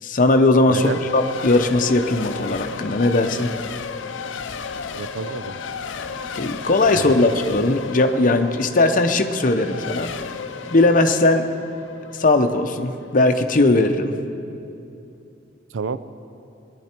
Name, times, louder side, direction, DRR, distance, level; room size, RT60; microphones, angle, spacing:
voice 1, 0.0-3.5 6.3-10.1 10.7-11.5 12.1-14.1, left 2 dB, 45° left, 6 dB, 0.7 m, -18 dB
voice 2, 0.7-1.0 5.0-5.6 6.9-7.2 15.7-16.0, right 5 dB, 85° right, 13 dB, 0.5 m, -29 dB
Race car auto racing / Accelerating revving vroom / Mechanisms, 0.8-13.3, left 6 dB, 80° left, 0.5 m, -34 dB
sound 1, 1.0-11.0, equal, 20° right, 2.3 m, -46 dB
19.5 x 10.5 x 4.5 m, 2.7 s
head